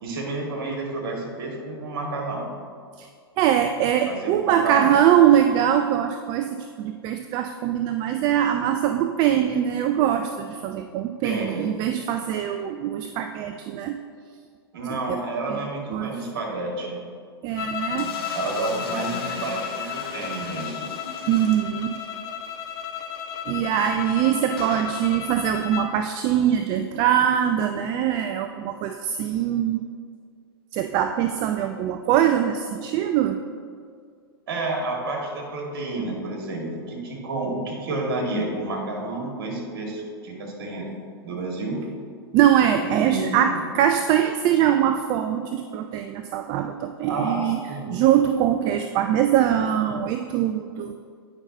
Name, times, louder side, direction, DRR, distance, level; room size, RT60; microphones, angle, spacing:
voice 1, 0.0-2.4 4.1-4.9 11.2-11.7 14.7-17.0 18.3-20.9 34.5-40.9 41.2-41.8 42.8-43.6 47.1-47.4 47.7-47.9, right 2 dB, 60° right, -1 dB, 2.0 m, -30 dB
voice 2, 3.4-14.0 14.9-15.2 15.5-15.6 15.9-16.1 17.4-18.1 21.3-22.0 23.5-29.8 30.7-33.4 42.3-47.6 47.9-50.9, right 10 dB, 30° right, 7 dB, 0.3 m, -22 dB
sound 1, 17.6-26.0, left 8 dB, 30° left, 0.5 m, -33 dB
sound 2, 18.0-22.2 22.5-22.6 22.8-22.9 24.6-24.9, left 3 dB, 65° left, 1.3 m, -38 dB
8.9 x 5.4 x 4.0 m, 2.1 s
figure-of-eight pair, 100°, 14 cm